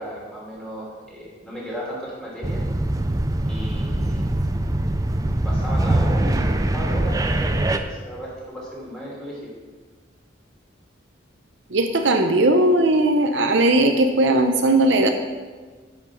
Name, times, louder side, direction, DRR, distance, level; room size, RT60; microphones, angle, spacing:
voice 1, 0.0-2.6 3.5-4.3 5.2-9.5, equal, 5° left, -6 dB, 3.0 m, -35 dB
sound 1, 2.4-7.8, right 1 dB, 20° right, 0.4 m, -22 dB
voice 2, 11.7-15.1, right 1 dB, 70° right, 5 dB, 0.8 m, -18 dB
9.7 x 5.4 x 6.3 m, 1.4 s
head